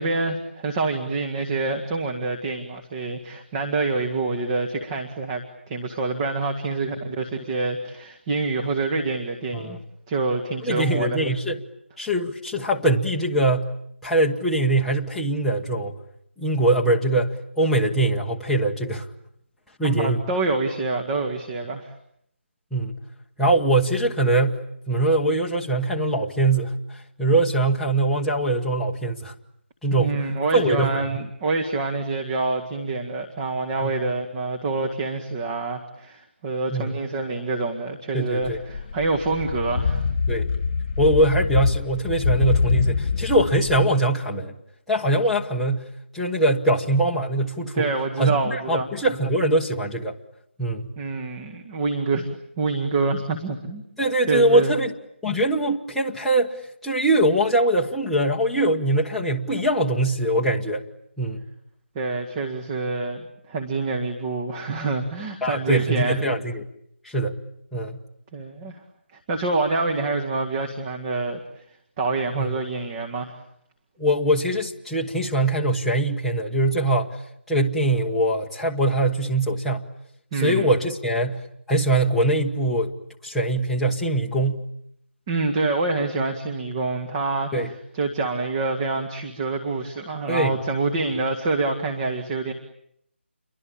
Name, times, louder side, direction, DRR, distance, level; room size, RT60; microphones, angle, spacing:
voice 1, 0.0-9.8 10.1-11.2 19.8-21.9 30.0-40.1 47.7-48.9 51.0-52.3 52.6-53.8 54.3-54.7 62.0-66.2 68.3-68.8 69.3-71.4 72.0-73.4 80.3-80.7 85.3-92.5, right 3 dB, 20° right, 4 dB, 1.8 m, -26 dB
voice 2, 10.6-11.6 12.0-13.7 14.0-16.0 16.4-19.1 19.8-20.2 22.7-23.0 23.4-29.3 29.8-30.2 30.5-31.2 33.8-33.9 36.7-36.9 38.1-38.6 40.3-40.5 41.0-44.6 44.9-47.9 48.2-50.2 50.6-50.9 54.0-54.9 55.2-60.9 61.2-61.4 65.4-66.7 67.0-67.4 67.7-68.0 72.3-72.5 74.0-77.2 77.5-79.9 80.3-82.9 83.2-84.7 87.5-87.7 90.3-90.6, right 1 dB, ahead, -4 dB, 1.2 m, -22 dB
sound 1, 38.4-43.8, left 5 dB, 30° left, 6.9 m, -24 dB
28.5 x 23.5 x 8.8 m, 0.73 s
figure-of-eight pair, 165°, 7 cm